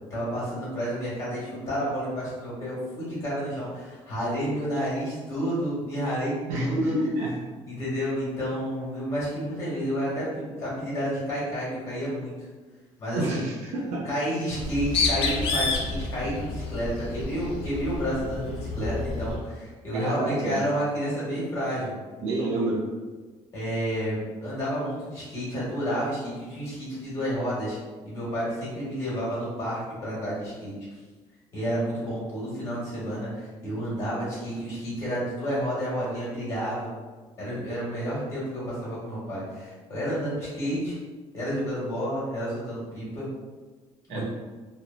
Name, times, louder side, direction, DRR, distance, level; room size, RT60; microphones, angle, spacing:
voice 1, 0.1-6.9 7.7-12.5 13.0-13.5 14.0-21.9 23.5-27.8 28.0-30.7 31.5-36.9 37.4-41.0 41.3-43.3 44.1-44.2, equal, 25° left, -8 dB, 1.4 m, -30 dB
voice 2, 6.5-7.3 13.2-14.1 19.9-20.6 22.2-22.8 44.1-44.2, right 1 dB, 85° right, -3 dB, 0.5 m, -28 dB
Bird, 14.5-19.4, left 3 dB, 50° left, 0.4 m, -29 dB
2.9 x 2.2 x 2.4 m, 1.3 s
cardioid pair, 165°, 12 cm